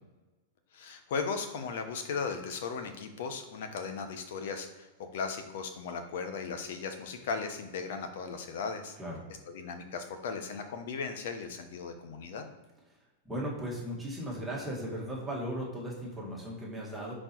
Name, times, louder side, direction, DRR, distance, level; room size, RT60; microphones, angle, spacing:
voice 1, 0.7-9.0 9.5-12.4, left 5 dB, 65° left, 7 dB, 1.0 m, -37 dB
voice 2, 13.2-17.1, equal, 5° right, -5 dB, 2.0 m, -37 dB
5.2 x 4.4 x 4.5 m, 1.2 s
supercardioid pair, 145°, 0 cm